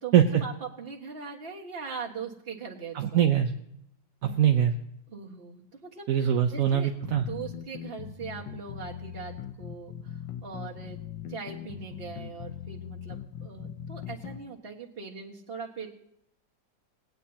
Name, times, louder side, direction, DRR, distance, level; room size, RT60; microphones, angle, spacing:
voice 1, 0.0-3.2 5.1-6.1 6.5-6.9 7.2-10.2 10.4-11.0 11.3-15.9, right 5 dB, 35° right, -2 dB, 1.7 m, -40 dB
voice 2, 2.9-3.5 4.2-4.7 6.1-7.3, right 9 dB, 65° right, 4 dB, 0.9 m, -22 dB
sound 1, 7.0-14.4, left 9 dB, 90° left, 1.6 m, -40 dB
20.0 x 9.2 x 2.8 m, 0.76 s
omnidirectional pair, 2.0 m